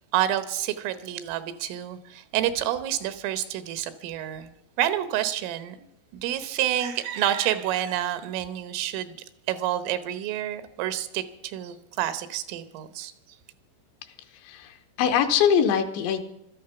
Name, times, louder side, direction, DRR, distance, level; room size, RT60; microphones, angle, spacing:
voice 1, 0.1-4.5 4.8-5.8 6.1-9.2 9.5-13.1, right 12 dB, 85° right, 3.6 m, -28 dB
voice 2, 14.4-16.2, left 8 dB, 80° left, 3.1 m, -23 dB
16.5 x 13.5 x 5.9 m
omnidirectional pair, 5.6 m